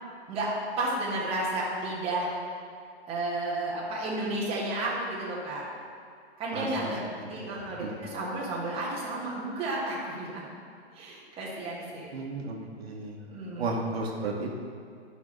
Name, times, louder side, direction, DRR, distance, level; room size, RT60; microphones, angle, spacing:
voice 1, 0.3-2.3 3.1-5.7 6.4-7.0 7.3-7.9 8.1-10.5 10.9-12.1 13.3-13.6, right 2 dB, 15° right, -6 dB, 1.5 m, -32 dB
voice 2, 6.5-6.9 7.2-7.3 7.8-8.0 12.1-13.2 13.6-14.5, right 3 dB, 65° right, -1 dB, 1.4 m, -33 dB
10.0 x 5.7 x 3.3 m, 2.3 s
hypercardioid pair, 145°, 33 cm